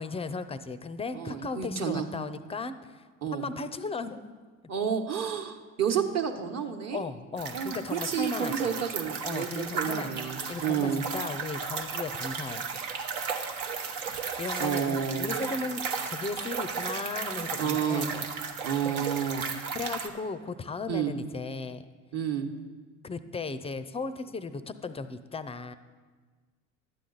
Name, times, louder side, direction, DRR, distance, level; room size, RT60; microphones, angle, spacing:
voice 1, 0.0-3.1 3.3-4.2 6.9-8.8 9.2-10.1 10.5-12.8 14.1-18.3 18.8-19.1 19.4-21.8 23.0-25.7, left 4 dB, 15° left, 13 dB, 0.4 m, -36 dB
voice 2, 1.1-2.1 3.2-3.5 4.7-7.0 7.5-11.0 14.6-15.3 17.5-18.1 18.6-19.4 20.9-21.1 22.1-22.5, right 7 dB, 40° right, 3 dB, 1.2 m, -30 dB
sound 1, 7.4-20.1, right 5 dB, 75° right, 1.1 m, -35 dB
12.0 x 8.4 x 4.0 m, 1.4 s
hypercardioid pair, 80°, 40 cm